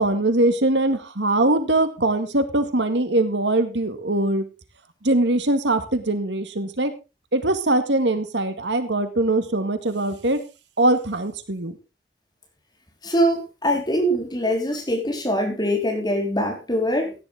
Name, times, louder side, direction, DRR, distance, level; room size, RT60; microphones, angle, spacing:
voice 1, 0.0-4.4 5.0-6.9 7.3-10.4 10.8-11.7, right 2 dB, 90° right, 9 dB, 2.0 m, -22 dB
voice 2, 13.0-17.1, equal, 25° left, 2 dB, 4.3 m, -23 dB
16.0 x 10.5 x 3.6 m, 0.29 s
head